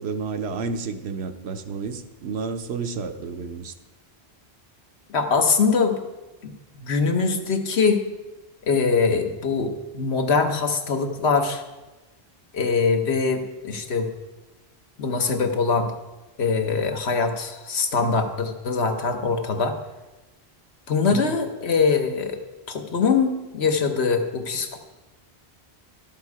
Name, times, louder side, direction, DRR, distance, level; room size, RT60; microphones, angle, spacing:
voice 1, 0.0-3.7 21.1-21.4, right 5 dB, 80° right, 8 dB, 1.0 m, -31 dB
voice 2, 5.1-5.9 6.4-6.5 6.8-8.0 8.7-11.6 12.5-14.1 15.0-15.9 16.4-19.7 20.9-22.4 22.7-24.8, left 4 dB, 80° left, 5 dB, 1.3 m, -23 dB
11.5 x 7.4 x 4.7 m, 1.1 s
omnidirectional pair, 1.1 m